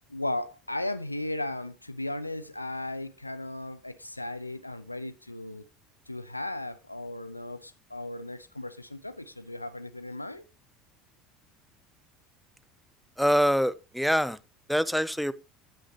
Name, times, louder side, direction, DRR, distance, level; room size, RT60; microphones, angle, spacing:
voice 1, 0.1-5.6 6.1-10.4, left 1 dB, 90° left, 0.6 m, -36 dB
voice 2, 13.2-14.4 14.7-15.3, equal, ahead, 0.7 m, -25 dB
17.0 x 6.4 x 2.8 m
figure-of-eight pair, 70°, 0 cm